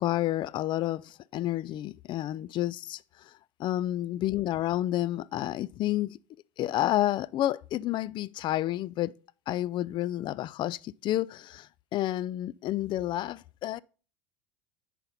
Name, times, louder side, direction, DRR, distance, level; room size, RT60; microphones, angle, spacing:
voice 1, 0.0-3.3 3.6-6.2 6.6-9.1 9.5-13.8, left 14 dB, 45° left, 0.4 m, -30 dB
9.7 x 4.2 x 5.4 m
hypercardioid pair, 80°, 12 cm